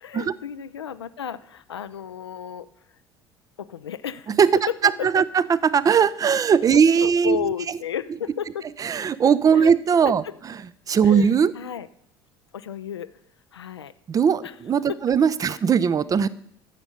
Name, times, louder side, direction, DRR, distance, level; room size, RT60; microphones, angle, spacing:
voice 1, 0.0-2.7 3.6-4.4 5.0-5.2 6.7-8.6 9.5-9.7 10.1-10.3 11.0-11.9 12.5-13.1 13.5-13.9 14.4-14.5 15.5-15.6, left 8 dB, 80° left, 12 dB, 0.4 m, -33 dB
voice 2, 4.8-7.5 8.8-10.2 10.9-11.5 14.1-16.3, right 7 dB, 25° right, 19 dB, 0.5 m, -19 dB
11.5 x 7.0 x 6.5 m, 0.70 s
figure-of-eight pair, 60°, 14 cm